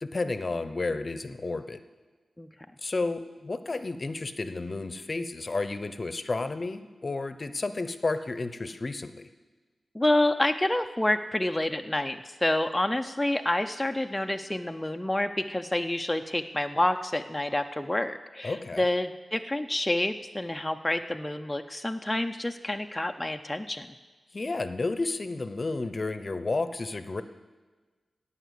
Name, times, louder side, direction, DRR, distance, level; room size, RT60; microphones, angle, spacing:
voice 1, 0.0-1.8 2.8-9.3 18.4-18.8 24.3-27.2, left 3 dB, 45° left, 11 dB, 0.8 m, -31 dB
voice 2, 9.9-23.9, left 1 dB, 15° left, 6 dB, 0.6 m, -28 dB
17.5 x 5.8 x 8.3 m, 1.3 s
cardioid pair, 50°, 0 cm